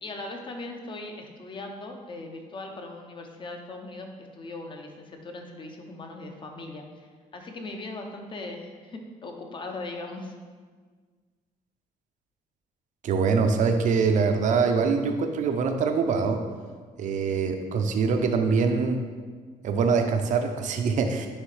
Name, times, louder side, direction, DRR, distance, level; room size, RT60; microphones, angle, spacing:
voice 1, 0.0-4.1 4.3-10.3, left 2 dB, 35° left, 3 dB, 0.8 m, -39 dB
voice 2, 13.0-16.4 17.0-19.0 19.6-21.3, right 5 dB, 55° right, 6 dB, 0.6 m, -24 dB
9.6 x 3.4 x 3.3 m, 1.5 s
cardioid pair, 130°, 15 cm